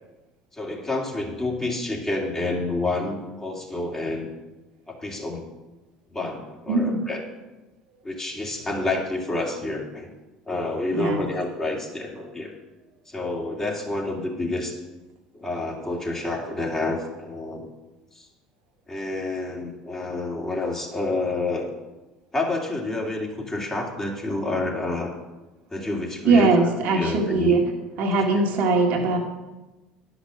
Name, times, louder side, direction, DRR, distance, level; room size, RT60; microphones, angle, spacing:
voice 1, 0.5-4.3 4.9-5.5 6.1-7.2 8.0-10.1 10.5-12.5 13.1-14.8 15.3-17.7 18.1-18.3 18.9-21.7 22.3-25.1 25.7-26.5 26.9-27.6 28.3-28.4, left 2 dB, 20° left, -1 dB, 2.9 m, -29 dB
voice 2, 6.7-7.0 10.9-11.3 26.2-27.6 28.0-29.2, right 3 dB, 60° right, 1 dB, 1.8 m, -20 dB
10.5 x 6.1 x 6.4 m, 1.1 s
hypercardioid pair, 75°, 3 cm